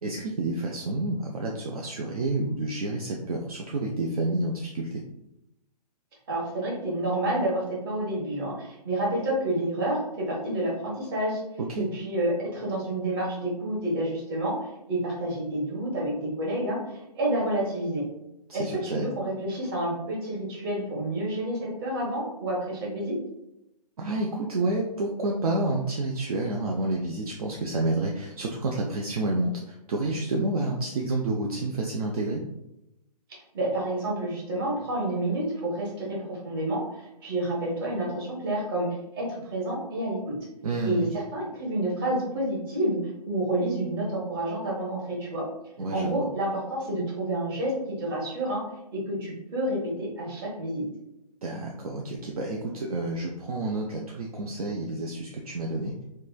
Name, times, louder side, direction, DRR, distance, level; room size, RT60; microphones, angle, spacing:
voice 1, 0.0-5.0 11.6-11.9 18.5-19.1 24.0-32.4 40.6-41.1 45.8-46.1 51.4-56.0, right 2 dB, 60° right, 0 dB, 0.4 m, -29 dB
voice 2, 6.3-11.4 11.8-18.0 18.5-23.2 33.3-40.4 40.8-45.4 45.9-48.6 48.9-50.9, right 1 dB, 35° right, -4 dB, 1.0 m, -29 dB
3.0 x 2.2 x 2.3 m, 0.88 s
figure-of-eight pair, 135°, 21 cm